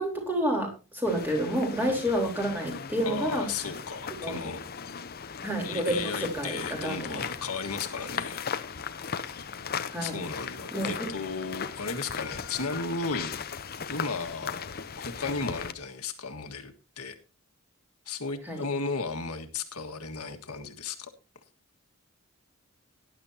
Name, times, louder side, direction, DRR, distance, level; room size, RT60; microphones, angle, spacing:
voice 1, 0.0-3.5 4.2-4.4 5.4-7.2 9.9-10.2 10.7-11.1 18.5-18.6, right 1 dB, 10° right, 1 dB, 3.8 m, -29 dB
sound 1, 1.0-15.7, left 6 dB, 45° left, 0.7 m, -37 dB
voice 2, 3.0-4.6 5.6-8.4 10.0-13.3 13.9-14.7 15.0-17.2 18.1-21.1, left 4 dB, 80° left, 6 dB, 1.7 m, -35 dB
18.5 x 11.0 x 2.8 m, 0.29 s
head